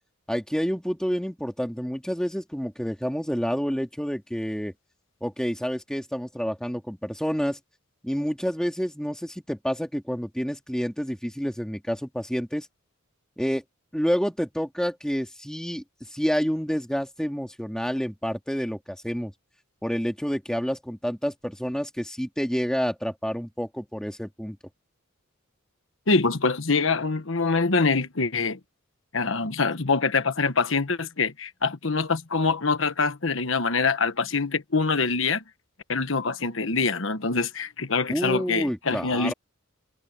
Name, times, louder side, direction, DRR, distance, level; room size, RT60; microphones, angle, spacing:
voice 1, 0.3-4.7 5.2-7.6 8.0-12.7 13.4-13.6 13.9-15.8 16.1-19.3 19.8-24.6 38.1-39.3, equal, 5° left, 2.5 m, -28 dB
voice 2, 26.1-28.6 29.1-35.4 35.9-39.3, left 4 dB, 60° left, 1.3 m, -24 dB
head